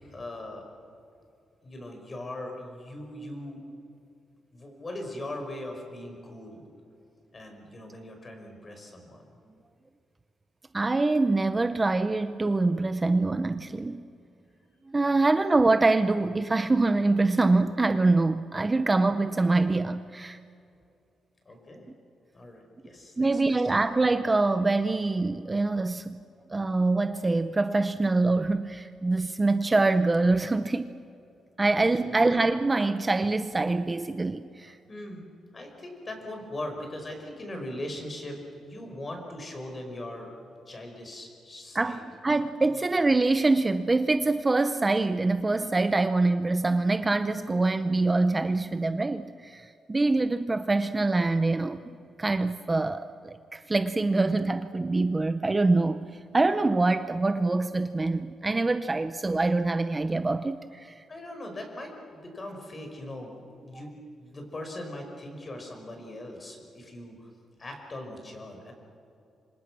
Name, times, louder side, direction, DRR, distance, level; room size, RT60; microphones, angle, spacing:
voice 1, 0.1-0.7 1.6-3.6 4.5-6.6 7.3-9.2 21.5-21.9 22.3-23.7 31.7-32.4 34.9-35.2 35.5-40.3 40.7-42.0 42.8-42.9 61.1-67.3 67.6-68.7, left 1 dB, 25° left, 3 dB, 5.3 m, -40 dB
voice 2, 10.7-14.0 14.9-20.4 23.2-26.2 26.5-30.9 31.6-34.8 41.7-51.8 52.2-56.1 56.3-61.0, right 3 dB, 20° right, 10 dB, 0.7 m, -25 dB
29.5 x 26.0 x 6.1 m, 2.6 s
cardioid pair, 135°, 0 cm